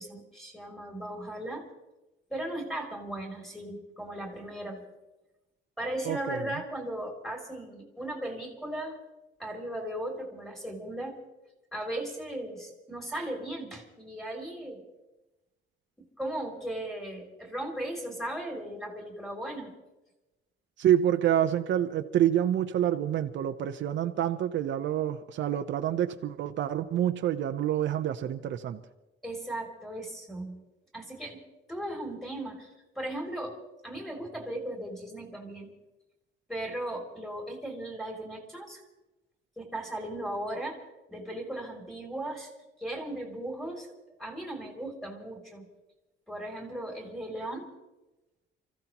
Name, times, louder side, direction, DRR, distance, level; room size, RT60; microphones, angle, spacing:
voice 1, 0.0-1.7 2.3-4.8 5.8-9.0 9.4-11.2 11.7-14.8 16.2-19.7 29.2-30.6 30.9-31.4 31.7-32.7 32.9-33.6 33.8-35.7 36.5-38.8 39.6-40.8 41.1-42.5 42.8-43.9 44.2-45.7 46.3-47.7, right 1 dB, ahead, 0 dB, 3.0 m, -37 dB
voice 2, 6.0-6.5 20.8-28.8, right 10 dB, 70° right, 7 dB, 0.8 m, -27 dB
29.0 x 15.0 x 3.0 m, 1.0 s
cardioid pair, 165°, 20 cm